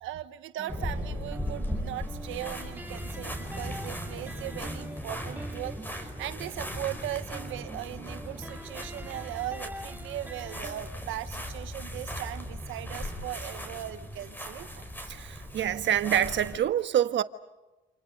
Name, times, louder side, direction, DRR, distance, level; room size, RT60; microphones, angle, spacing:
voice 1, 0.0-14.7, right 14 dB, 90° right, 1.3 m, -38 dB
sound 1, 0.6-10.9, right 1 dB, 10° right, 1.6 m, -46 dB
sound 2, 0.7-16.6, equal, 10° left, 5.1 m, -38 dB
voice 2, 15.1-17.2, right 10 dB, 70° right, 1.4 m, -26 dB
29.0 x 28.0 x 5.4 m
cardioid pair, 90°, 20 cm